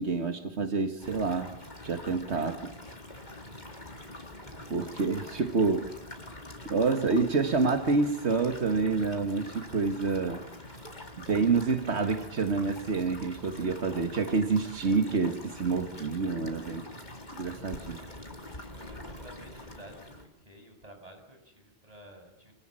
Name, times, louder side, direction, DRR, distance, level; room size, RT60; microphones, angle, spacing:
voice 1, 0.0-1.5 1.8-2.7 4.7-5.9 6.7-10.4 11.2-16.9 17.4-18.0, right 4 dB, 85° right, 7 dB, 1.9 m, -28 dB
sound 1, 1.0-20.3, left 1 dB, 45° left, 3.8 m, -45 dB
voice 2, 3.5-4.0 4.4-5.0 16.2-16.8 17.3-22.5, right 1 dB, 35° right, 4 dB, 6.8 m, -54 dB
27.5 x 27.0 x 7.6 m, 0.78 s
omnidirectional pair, 1.1 m